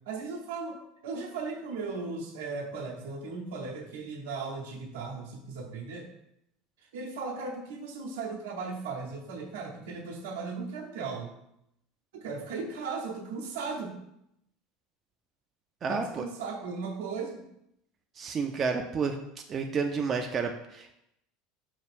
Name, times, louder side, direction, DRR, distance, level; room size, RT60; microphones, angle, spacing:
voice 1, 0.1-0.8 1.0-6.1 6.9-11.3 12.1-14.0 15.9-17.4, right 4 dB, 75° right, 2 dB, 0.8 m, -37 dB
voice 2, 15.8-16.3 18.2-19.2 19.5-20.9, right 5 dB, 35° right, 4 dB, 0.4 m, -30 dB
5.5 x 2.4 x 3.4 m, 0.79 s
hypercardioid pair, 80°, 0 cm